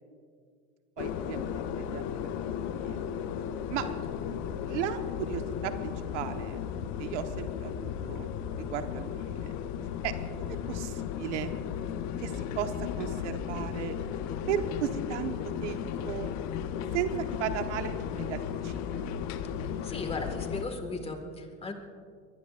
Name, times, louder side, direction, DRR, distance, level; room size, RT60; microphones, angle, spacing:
sound 1, 1.0-20.6, left 8 dB, 55° left, 1.0 m, -35 dB
voice 1, 1.0-2.3 2.7-2.9 3.7-3.8 4.3-4.4 4.7-6.7 7.0-9.5 10.0-11.5 12.2-13.9 14.5-15.3 15.6-16.3 16.9-19.0, right 9 dB, 90° right, 7 dB, 1.3 m, -36 dB
voice 2, 19.6-21.7, left 3 dB, 15° left, 5 dB, 1.9 m, -37 dB
24.0 x 21.0 x 2.5 m, 2.2 s
supercardioid pair, 125°, 34 cm